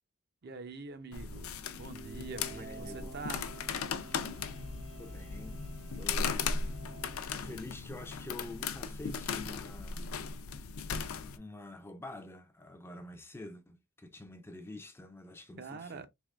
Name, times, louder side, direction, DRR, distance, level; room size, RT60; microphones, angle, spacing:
voice 1, 0.4-3.4 6.4-6.5 15.6-16.1, right 4 dB, 50° right, 0.5 m, -45 dB
sound 1, 1.1-11.4, left 5 dB, 70° left, 0.5 m, -37 dB
sound 2, 1.5-7.3, right 3 dB, 70° right, 1.6 m, -51 dB
voice 2, 2.5-3.2 5.0-5.6 5.9-6.5 7.3-10.1 10.5-10.9 11.4-16.1, left 2 dB, 10° left, 0.4 m, -47 dB
3.5 x 3.2 x 2.3 m
head